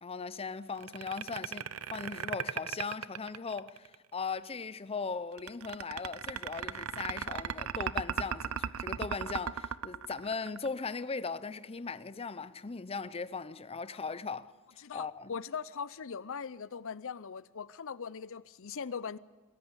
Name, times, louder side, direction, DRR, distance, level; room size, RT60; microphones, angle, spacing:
voice 1, 0.0-14.5 14.9-15.3, left 4 dB, 25° left, 0.7 m, -38 dB
sound 1, 0.8-3.9 5.4-10.9, right 7 dB, 80° right, 0.8 m, -36 dB
voice 2, 14.8-19.2, left 6 dB, 65° left, 0.6 m, -40 dB
22.0 x 17.0 x 8.8 m
head